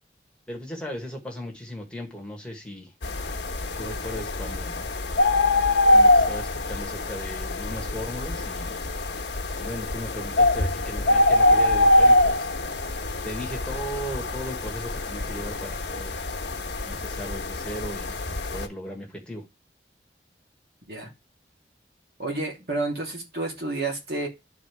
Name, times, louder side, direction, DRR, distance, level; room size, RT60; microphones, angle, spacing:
voice 1, 0.5-2.9 3.8-4.9 5.9-8.8 9.6-12.5 13.2-16.2 16.8-18.2 18.5-19.5, equal, 5° left, 0 dB, 1.4 m, -37 dB
sound 1, 3.0-18.7, left 1 dB, 80° left, 1.1 m, -24 dB
voice 2, 22.2-24.3, right 2 dB, 55° right, 0 dB, 2.7 m, -30 dB
11.0 x 3.8 x 4.8 m, 0.25 s
head